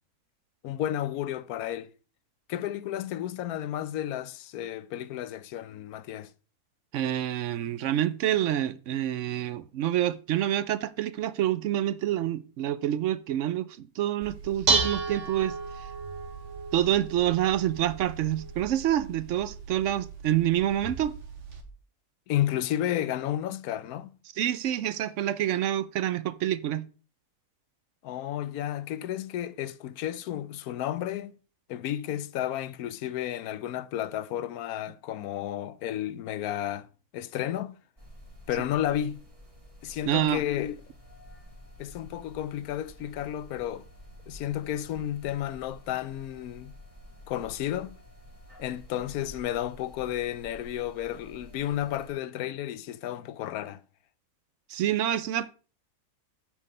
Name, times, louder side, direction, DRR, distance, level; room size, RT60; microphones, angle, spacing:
voice 1, 0.6-1.9 2.5-6.3 22.3-24.1 28.0-31.3 31.7-36.9 37.1-37.8 38.5-39.2 39.8-40.8 41.8-43.8 44.3-46.7 47.3-48.0 48.6-53.8, left 12 dB, 75° left, 1.1 m, -32 dB
voice 2, 6.9-15.5 16.7-21.1 24.4-26.8 40.1-40.4 54.7-55.5, right 12 dB, 70° right, 0.7 m, -27 dB
Dishes pots and pans, 14.2-21.6, right 4 dB, 50° right, 1.5 m, -33 dB
sound 1, 38.0-52.1, equal, 20° right, 2.3 m, -50 dB
8.4 x 4.8 x 5.3 m
omnidirectional pair, 1.6 m